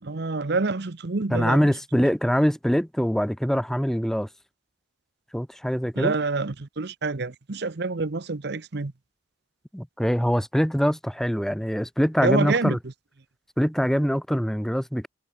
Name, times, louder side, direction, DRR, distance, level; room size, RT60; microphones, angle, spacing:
voice 1, 0.0-2.1 5.9-8.9 12.2-12.8, right 3 dB, 60° right, 0.9 m, -27 dB
voice 2, 1.3-4.3 5.3-6.1 9.7-12.8 13.6-15.1, equal, ahead, 1.5 m, -23 dB
head